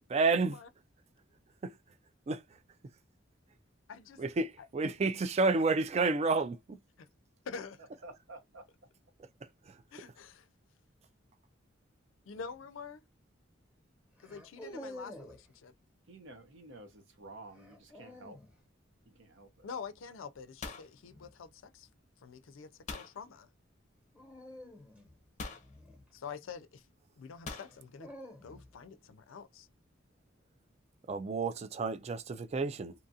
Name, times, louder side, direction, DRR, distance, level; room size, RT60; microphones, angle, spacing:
voice 1, 0.1-0.6 1.6-1.7 2.3-2.4 4.2-6.8 9.7-9.8 31.1-32.9, right 3 dB, 35° right, 0.3 m, -30 dB
voice 2, 3.9-4.2 4.6-4.7 7.0-7.1 7.5-7.8 9.9-10.5 12.3-13.0 14.2-15.7 19.6-21.9 22.2-23.5 26.1-26.8 27.2-28.1 28.4-29.7, left 5 dB, 85° left, 0.4 m, -46 dB
voice 3, 8.0-8.7 16.1-18.4 19.1-19.7, right 2 dB, 70° right, 0.8 m, -51 dB
sound 1, 12.3-12.7 14.2-15.5 17.5-18.5 21.0-21.4 24.1-26.5 27.6-28.9, equal, 5° right, 1.0 m, -50 dB
sound 2, 19.0-19.3 19.6-20.0 20.3-21.8 22.9-23.2 24.3-24.4 25.4-25.7 27.5-27.8, left 4 dB, 40° left, 0.5 m, -43 dB
2.7 x 2.4 x 2.7 m
head